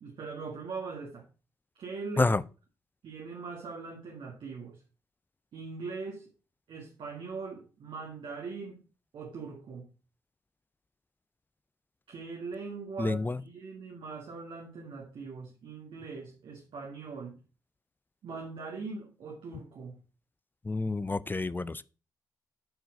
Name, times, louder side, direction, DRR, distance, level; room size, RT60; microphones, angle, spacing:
voice 1, 0.0-1.3 1.8-2.4 3.0-4.8 5.5-6.3 6.7-8.8 9.1-9.9 12.1-17.4 18.2-20.0, right 4 dB, 60° right, 1.7 m, -41 dB
voice 2, 13.0-13.4 20.7-21.8, left 3 dB, 20° left, 0.5 m, -28 dB
7.7 x 4.6 x 5.1 m
hypercardioid pair, 40°, 10 cm